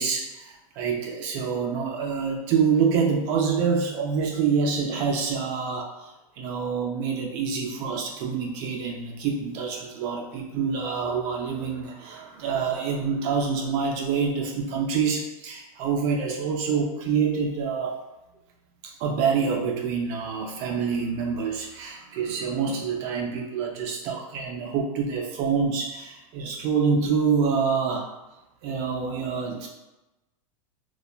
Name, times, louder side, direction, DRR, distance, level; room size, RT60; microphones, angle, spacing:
voice 1, 0.0-18.0 18.8-28.1 28.6-29.7, right 6 dB, 45° right, 0 dB, 0.4 m, -26 dB
2.8 x 2.2 x 2.4 m, 1.0 s
supercardioid pair, 135°, 19 cm